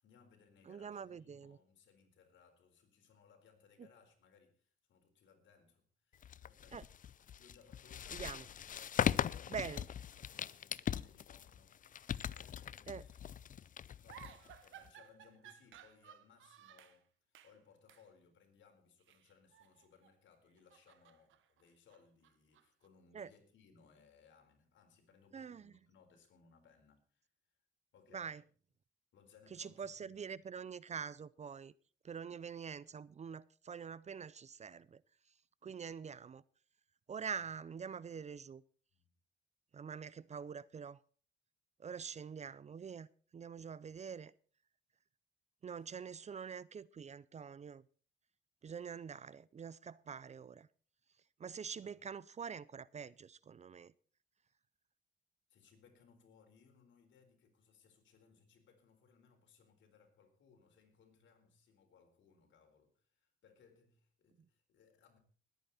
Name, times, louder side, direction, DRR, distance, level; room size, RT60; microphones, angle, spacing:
voice 1, 0.0-6.9 7.4-9.9 10.2-13.2 14.0-27.3 27.9-28.4 29.1-30.1 37.2-37.4 38.9-39.2 45.7-45.9 51.8-52.0 55.5-65.2, left 6 dB, 70° left, 4.3 m, -66 dB
voice 2, 0.7-1.6 3.8-3.9 6.7-6.8 8.1-8.4 9.5-9.8 12.9-13.0 23.1-23.3 25.3-25.7 28.1-28.4 29.5-31.7 32.0-35.0 35.6-36.4 37.1-38.6 39.7-41.0 41.8-43.1 43.3-44.3 45.6-47.8 48.6-50.7 51.4-53.9, right 6 dB, 35° right, 0.5 m, -45 dB
sound 1, 6.2-14.9, left 9 dB, 40° left, 0.5 m, -40 dB
sound 2, 14.1-17.0 17.3-17.6 17.9-18.1 19.0-20.2 20.5-22.9, right 11 dB, 80° right, 1.3 m, -59 dB
20.0 x 9.1 x 4.2 m
cardioid pair, 90°, 20 cm